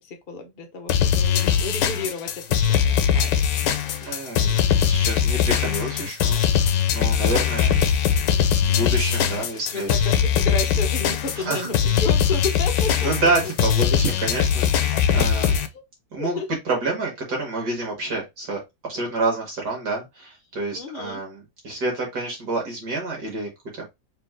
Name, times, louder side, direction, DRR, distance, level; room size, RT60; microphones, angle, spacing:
voice 1, 0.0-3.4 9.7-13.3 14.3-14.4 14.9-15.0 15.5-15.8 16.2-16.5 20.7-21.2, left 3 dB, 40° left, 0.8 m, -32 dB
sound 1, 0.9-15.7, left 8 dB, 75° left, 1.3 m, -21 dB
voice 2, 4.0-7.8 8.2-9.9 11.4-11.7 13.0-15.6 16.1-16.4 16.7-18.6 18.9-23.8, right 3 dB, 65° right, 2.0 m, -28 dB
4.4 x 3.2 x 3.6 m
omnidirectional pair, 2.0 m